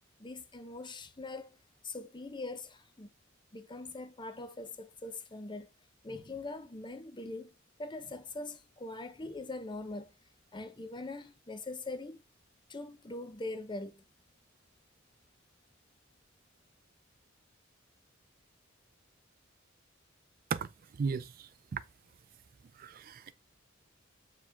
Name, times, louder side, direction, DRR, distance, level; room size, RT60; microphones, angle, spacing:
voice 1, 0.2-1.6 1.8-3.1 3.5-5.7 6.0-7.5 7.8-10.1 10.5-12.2 12.7-14.0, left 2 dB, 25° left, 0.8 m, -42 dB
voice 2, 21.0-21.3 21.7-21.8 22.8-23.3, right 5 dB, 45° right, 0.4 m, -34 dB
7.3 x 4.8 x 3.5 m
head